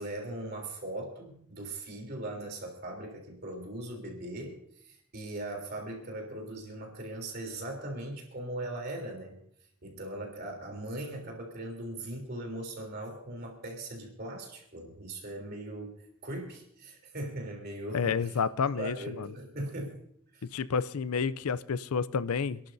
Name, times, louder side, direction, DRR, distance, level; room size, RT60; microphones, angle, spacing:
voice 1, 0.0-9.4 9.8-18.4 18.8-20.0 20.3-20.5, right 1 dB, 45° right, 2 dB, 3.3 m, -39 dB
voice 2, 17.9-19.3 20.5-22.6, left 6 dB, 90° left, 17 dB, 0.5 m, -30 dB
27.5 x 11.5 x 2.7 m, 0.69 s
head